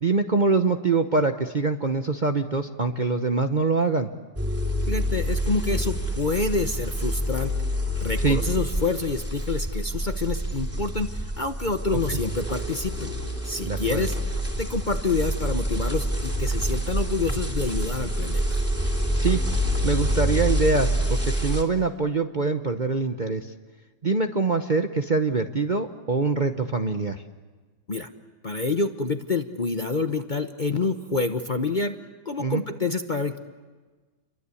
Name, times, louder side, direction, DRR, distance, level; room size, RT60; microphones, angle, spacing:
voice 1, 0.0-4.1 8.2-8.4 12.1-12.2 13.6-14.1 19.2-19.4 19.8-23.5 24.0-27.2 32.4-32.6, right 4 dB, 35° right, 5 dB, 0.9 m, -24 dB
sound 1, 4.4-21.6, equal, 10° right, 3.1 m, -27 dB
voice 2, 4.9-7.5 8.0-13.1 13.4-14.2 14.6-18.6 27.9-28.1 28.4-31.9 32.2-33.4, left 3 dB, 35° left, 7 dB, 1.0 m, -27 dB
29.5 x 23.0 x 8.4 m, 1.3 s
omnidirectional pair, 1.8 m